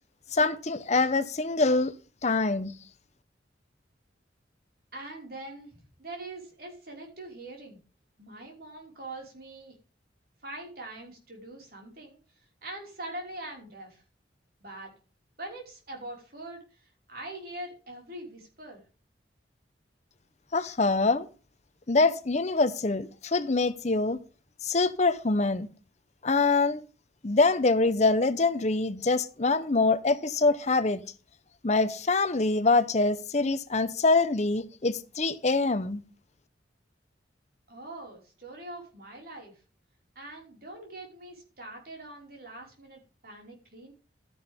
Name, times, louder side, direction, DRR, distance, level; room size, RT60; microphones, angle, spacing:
voice 1, 0.3-1.9 2.2-2.7 20.5-21.3 21.9-24.2 24.6-25.7 26.2-26.8 27.2-31.0 31.6-36.0, left 3 dB, 40° left, 0.8 m, -24 dB
voice 2, 4.9-7.8 8.2-9.7 10.4-12.2 12.6-14.0 14.6-14.9 15.4-16.6 17.1-18.8 37.7-39.5 40.2-43.9, right 2 dB, 55° right, 5.2 m, -43 dB
13.0 x 10.0 x 3.6 m
head